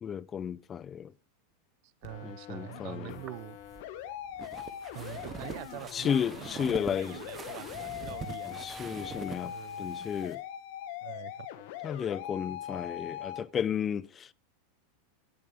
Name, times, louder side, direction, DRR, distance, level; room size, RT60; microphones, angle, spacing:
voice 1, 0.0-1.1 2.2-3.2 5.9-7.2 8.4-10.4 11.8-14.3, left 8 dB, 30° left, 0.4 m, -33 dB
voice 2, 1.8-3.6 4.9-10.0 11.0-11.5, right 19 dB, 55° right, 0.5 m, -45 dB
sound 1, 2.0-13.4, left 11 dB, 65° left, 1.6 m, -41 dB
sound 2, 3.1-9.4, right 6 dB, 25° right, 1.0 m, -44 dB
sound 3, 5.4-10.4, right 2 dB, 10° right, 3.3 m, -59 dB
17.5 x 7.0 x 3.4 m
hypercardioid pair, 110°, 0 cm